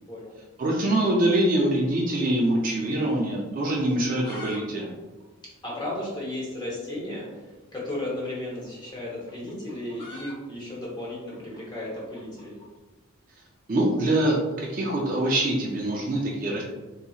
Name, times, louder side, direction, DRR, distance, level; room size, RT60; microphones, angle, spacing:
voice 1, 0.6-5.0 13.7-16.6, right 1 dB, 40° right, -2 dB, 0.4 m, -24 dB
sound 1, 1.7-3.0 3.2-3.3 3.9-4.6 4.9-5.0 5.2-5.3 5.9-6.0 7.2-7.4 8.5-12.7, left 2 dB, 40° left, 1.2 m, -45 dB
voice 2, 5.6-12.6, left 1 dB, 20° left, -5 dB, 1.0 m, -34 dB
4.0 x 2.8 x 2.4 m, 1.2 s
head